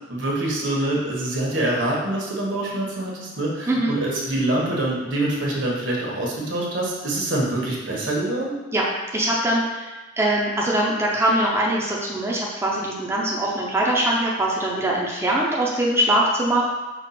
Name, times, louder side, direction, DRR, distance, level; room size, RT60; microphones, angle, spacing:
voice 1, 0.1-8.6, right 1 dB, 75° right, -3 dB, 1.1 m, -25 dB
voice 2, 9.1-9.9 10.2-16.6, right 1 dB, 15° right, -4 dB, 0.5 m, -22 dB
5.1 x 2.3 x 4.1 m, 1.1 s
head